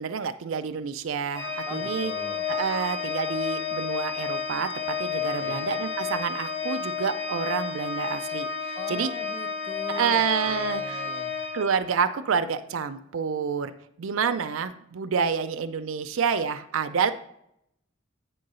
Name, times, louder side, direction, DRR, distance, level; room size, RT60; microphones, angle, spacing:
voice 1, 0.0-2.1 2.5-4.7 5.0-9.1 9.9-11.0 11.5-17.1, right 6 dB, 85° right, 9 dB, 0.5 m, -28 dB
Organ, 1.3-12.2, left 5 dB, 65° left, 0.7 m, -31 dB
voice 2, 1.7-2.5 5.4-5.7 8.8-11.4, left 1 dB, 10° left, 6 dB, 0.6 m, -41 dB
8.9 x 3.8 x 5.4 m, 0.76 s
head